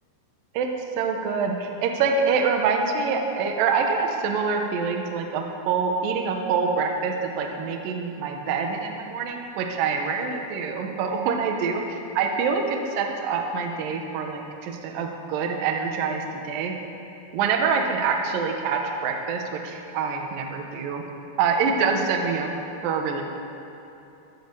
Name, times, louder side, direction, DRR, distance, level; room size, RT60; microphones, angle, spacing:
voice 1, 1.0-11.8 12.1-16.7 17.3-21.0 21.4-22.5 22.8-23.2, right 5 dB, 85° right, 3 dB, 2.0 m, -25 dB
15.0 x 6.3 x 6.6 m, 3.0 s
omnidirectional pair, 5.3 m